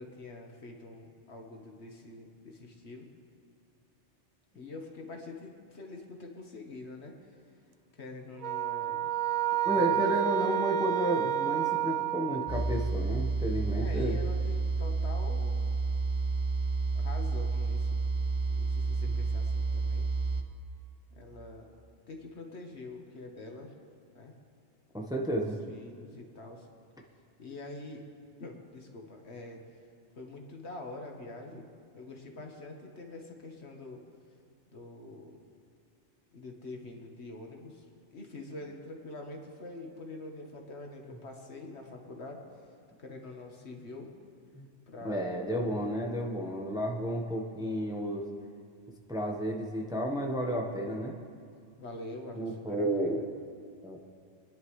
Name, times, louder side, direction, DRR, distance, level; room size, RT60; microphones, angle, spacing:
voice 1, 0.0-3.1 4.5-7.1 7.9-9.1 9.7-10.2 13.7-15.7 16.9-18.0 18.5-20.1 21.2-21.7 22.1-23.7 24.1-24.3 25.7-26.7 27.4-28.0 28.4-29.6 30.2-31.7 31.9-34.0 34.7-35.4 36.3-37.8 38.1-42.4 43.0-44.1 44.9-45.3 45.5-46.0 46.3-46.4 51.8-53.3, left 2 dB, 65° left, 2 dB, 1.6 m, -45 dB
sound 1, 8.4-12.8, right 12 dB, 60° right, 0.4 m, -30 dB
voice 2, 9.6-14.2 24.9-25.6 44.5-44.7 45.0-48.3 49.1-51.1 52.3-53.2 53.8-54.0, right 1 dB, 5° right, 0 dB, 1.1 m, -32 dB
sound 2, 12.5-20.4, right 3 dB, 30° right, 0.7 m, -30 dB
25.5 x 10.5 x 3.2 m, 2.3 s
omnidirectional pair, 1.2 m